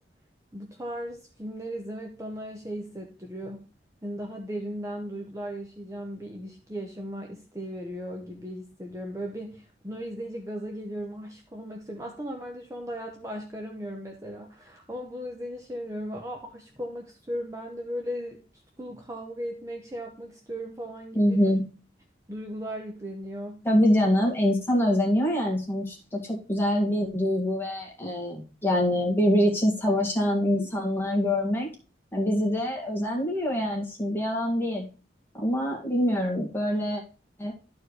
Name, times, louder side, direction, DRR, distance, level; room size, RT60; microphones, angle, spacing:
voice 1, 0.5-3.7 4.0-18.4 18.8-21.5 22.3-23.7, equal, 15° right, 2 dB, 0.8 m, -37 dB
voice 2, 21.1-21.6 23.6-31.7 32.1-34.8 35.3-37.0 37.4-37.5, equal, 10° left, -2 dB, 1.9 m, -25 dB
12.0 x 4.6 x 3.2 m, 0.35 s
head